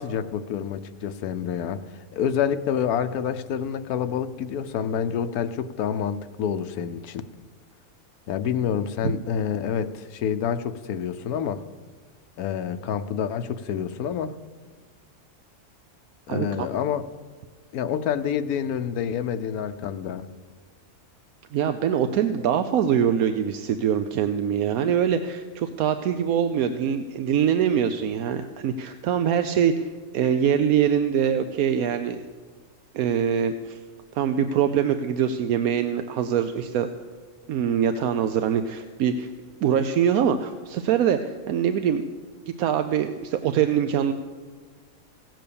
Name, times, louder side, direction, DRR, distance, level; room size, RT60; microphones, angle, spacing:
voice 1, 0.0-1.8 2.1-7.2 8.3-11.6 12.4-14.3 16.3-17.1 17.7-20.3, left 8 dB, 80° left, 10 dB, 1.2 m, -28 dB
voice 2, 16.3-16.7 21.5-32.2 32.9-33.8 34.1-36.9 37.5-39.3 39.6-42.1 42.5-44.1, right 8 dB, 80° right, 9 dB, 1.1 m, -23 dB
17.0 x 7.6 x 6.9 m, 1.5 s
omnidirectional pair, 1.5 m